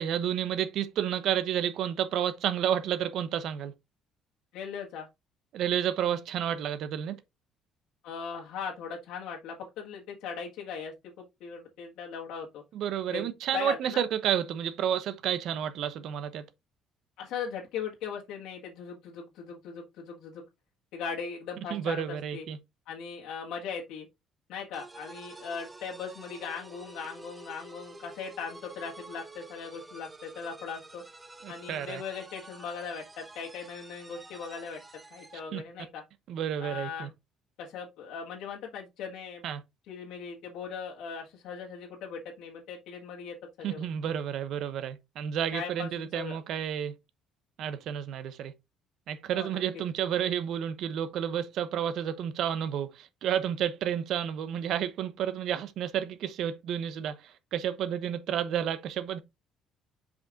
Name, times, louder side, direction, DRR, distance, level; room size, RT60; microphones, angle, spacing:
voice 1, 0.0-3.7 5.5-7.2 12.7-16.4 21.7-22.6 31.4-32.0 35.5-35.6 36.3-37.1 39.4-39.6 43.6-46.9 47.6-48.5 49.1-59.2, right 9 dB, 65° right, 1.0 m, -31 dB
voice 2, 4.5-5.1 8.0-12.6 13.1-14.0 17.2-20.4 20.9-22.5 22.9-24.1 24.5-31.0 31.5-34.8 35.1-36.0 36.6-37.1 37.6-39.5 39.9-43.9 45.5-46.4 49.3-49.6, left 6 dB, 80° left, 1.7 m, -39 dB
sound 1, 24.7-35.5, right 2 dB, 15° right, 0.8 m, -49 dB
5.7 x 5.3 x 3.7 m
cardioid pair, 135°, 0 cm